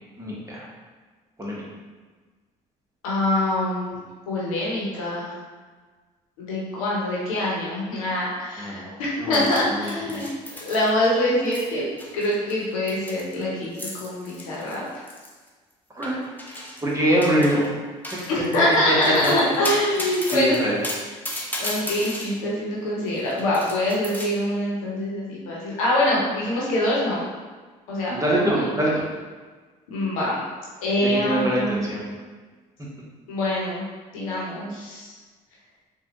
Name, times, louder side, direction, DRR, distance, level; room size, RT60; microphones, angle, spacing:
voice 1, 0.2-0.7 1.4-1.6 8.6-8.9 9.2-10.2 15.9-16.2 16.8-17.7 18.1-18.2 18.9-19.5 20.3-20.8 28.1-29.0 31.0-32.1, right 1 dB, 20° right, -5 dB, 1.2 m, -24 dB
voice 2, 3.0-4.0 4.3-5.3 6.4-10.3 10.5-11.9 12.1-15.1 18.3-20.6 21.6-27.3 27.9-28.7 29.9-30.4 30.8-31.8 33.3-33.8 34.1-35.1, left 1 dB, 85° left, -5 dB, 0.9 m, -24 dB
sound 1, 9.3-11.2 11.4-11.7 12.0-15.5 16.0-16.9 17.2-17.7 18.0-22.3 23.1-24.3, left 1 dB, 10° left, 0.8 m, -34 dB
4.0 x 2.4 x 3.0 m, 1.4 s
hypercardioid pair, 55°, 17 cm